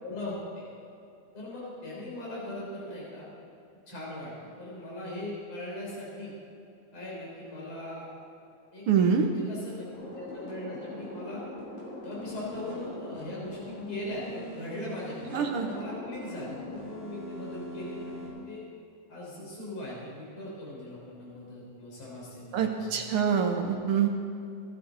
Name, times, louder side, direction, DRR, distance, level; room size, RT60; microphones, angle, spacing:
voice 1, 0.0-0.7 1.3-3.3 3.9-6.3 6.9-8.1 8.7-8.9 9.2-9.9 10.1-11.4 12.0-18.6 19.1-23.1, left 1 dB, 45° left, -5 dB, 4.4 m, -40 dB
voice 2, 8.9-9.3 15.3-15.7 22.5-24.1, right 7 dB, 65° right, 3 dB, 1.5 m, -25 dB
sound 1, 9.9-18.3, left 1 dB, 80° left, 5.1 m, -41 dB
17.0 x 12.0 x 4.0 m, 2.6 s
omnidirectional pair, 3.4 m